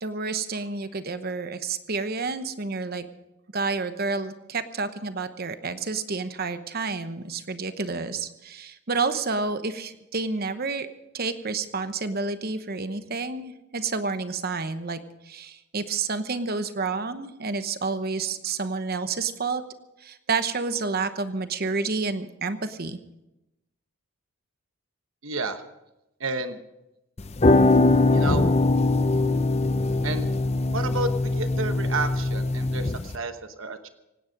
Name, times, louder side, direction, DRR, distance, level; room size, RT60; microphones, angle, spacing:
voice 1, 0.0-3.0 3.5-10.9 11.1-15.0 15.3-19.6 20.0-23.0, right 4 dB, 45° right, 10 dB, 1.0 m, -29 dB
voice 2, 25.2-25.6 26.2-26.6 28.1-28.4 30.0-30.3 30.7-33.9, right 3 dB, 65° right, 8 dB, 1.1 m, -31 dB
sound 1, 27.2-33.2, left 2 dB, 30° left, 0.6 m, -22 dB
25.5 x 9.5 x 5.2 m, 0.93 s
head